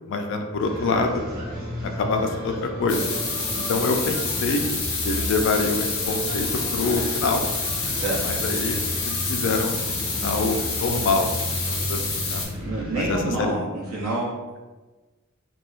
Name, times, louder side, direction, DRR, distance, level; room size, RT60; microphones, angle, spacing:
voice 1, 0.1-1.2 1.8-3.0 3.7-4.7 5.0-7.4 8.2-12.4 13.0-13.6, left 3 dB, 60° left, 5 dB, 0.3 m, -26 dB
sound 1, 0.6-13.3, equal, 45° right, 0.9 m, -33 dB
sound 2, 2.9-12.5, left 4 dB, 85° left, 0.7 m, -28 dB
voice 2, 12.6-14.3, right 2 dB, 75° right, -5 dB, 0.5 m, -27 dB
3.0 x 2.2 x 2.4 m, 1.2 s
head